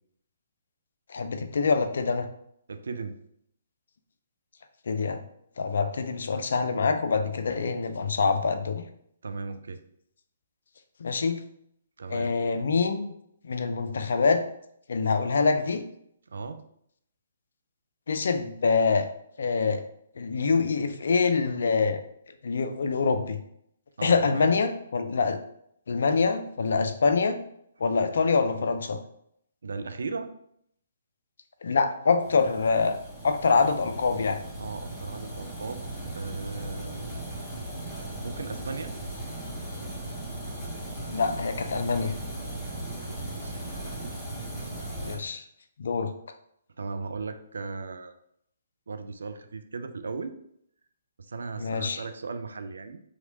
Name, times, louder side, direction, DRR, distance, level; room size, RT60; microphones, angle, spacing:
voice 1, 1.1-2.3 4.9-5.2 5.6-8.8 11.0-11.4 12.1-13.1 13.4-14.4 14.9-15.8 18.1-19.1 19.4-19.8 20.2-22.0 22.4-23.4 24.0-25.4 25.9-27.4 27.8-29.0 31.6-33.0 33.2-34.4 41.1-42.1 45.0-45.4 45.8-46.1 51.6-52.0, left 4 dB, 60° left, 8 dB, 0.3 m, -25 dB
voice 2, 2.7-3.2 9.2-9.8 12.0-12.3 16.3-16.6 24.0-24.5 29.6-30.3 34.6-35.8 36.1-37.1 38.2-38.9 42.5-44.1 45.1-45.4 46.8-48.2 48.9-50.4 51.2-53.0, right 4 dB, 65° right, 8 dB, 0.3 m, -37 dB
sound 1, 32.2-45.2, right 1 dB, ahead, 1.0 m, -37 dB
2.9 x 2.8 x 2.7 m, 0.71 s
figure-of-eight pair, 130°, 0 cm